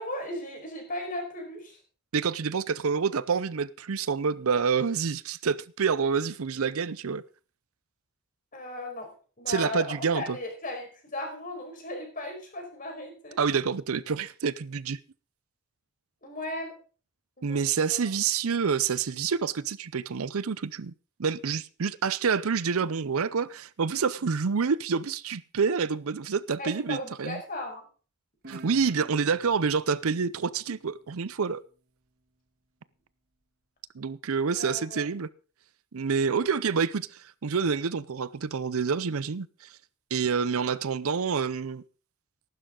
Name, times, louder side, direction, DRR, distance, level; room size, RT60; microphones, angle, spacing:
voice 1, 0.0-1.8 8.5-9.1 9.4-13.4 16.2-16.7 17.4-18.0 26.6-27.8 34.5-35.0, left 1 dB, 35° left, 5.0 m, -36 dB
voice 2, 2.1-7.2 9.5-10.4 13.4-15.0 17.4-20.9 21.2-27.4 28.5-31.6 33.9-35.3 35.9-39.7 40.1-41.8, right 5 dB, 70° right, 0.6 m, -28 dB
Guitar, 28.4-31.7, right 1 dB, 45° right, 1.8 m, -50 dB
15.0 x 12.0 x 3.8 m
head